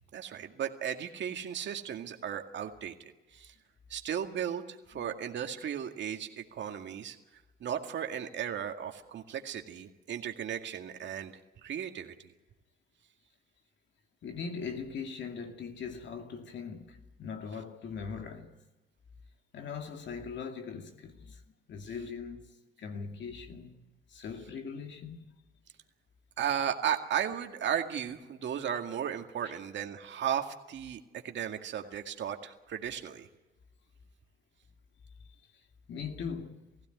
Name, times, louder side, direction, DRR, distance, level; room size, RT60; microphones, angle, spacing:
voice 1, 0.1-3.5 3.9-7.2 7.6-11.3 11.6-12.3 26.4-33.3, right 9 dB, 65° right, 2.1 m, -35 dB
voice 2, 14.2-18.6 19.5-21.4 21.7-23.8 24.1-25.3 35.5-36.7, left 5 dB, 65° left, 2.3 m, -41 dB
20.0 x 16.0 x 9.3 m
cardioid pair, 90°, 20 cm